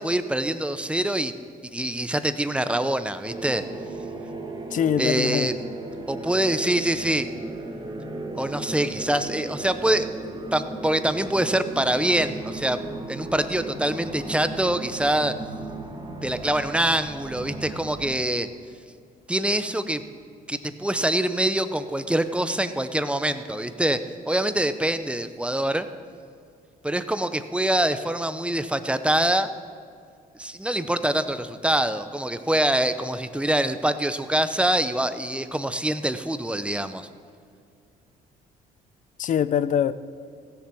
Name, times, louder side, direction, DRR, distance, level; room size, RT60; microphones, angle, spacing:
voice 1, 0.0-1.3 1.7-3.6 5.0-5.5 6.1-7.3 8.3-10.1 10.5-15.3 16.2-18.5 19.3-20.0 20.5-25.9 26.8-29.5 30.4-37.1, right 1 dB, 5° right, 10 dB, 0.6 m, -25 dB
sound 1, 3.2-18.2, right 2 dB, 25° right, 1.5 m, -36 dB
voice 2, 4.7-5.5 39.2-39.9, left 9 dB, 50° left, 16 dB, 0.5 m, -23 dB
16.0 x 6.8 x 6.2 m, 2.3 s
cardioid pair, 100°, 17 cm